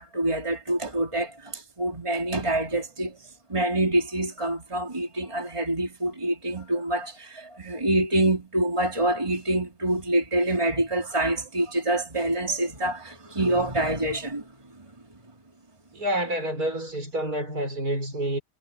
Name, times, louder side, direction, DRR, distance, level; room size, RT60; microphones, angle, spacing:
voice 1, 0.0-15.2, right 1 dB, 15° right, 4.1 m, -26 dB
voice 2, 15.9-18.4, right 1 dB, 60° right, 6.7 m, -28 dB
omnidirectional pair, 1.8 m